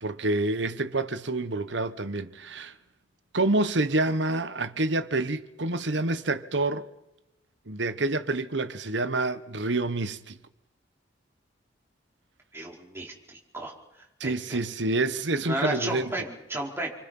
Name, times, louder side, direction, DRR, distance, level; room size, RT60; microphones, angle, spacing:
voice 1, 0.0-2.7 3.3-6.9 7.7-10.4 14.2-16.1, right 2 dB, 70° right, 1.4 m, -27 dB
voice 2, 12.5-13.7 14.2-14.6 15.5-16.9, right 1 dB, 15° right, 4.8 m, -33 dB
28.5 x 24.5 x 5.6 m
head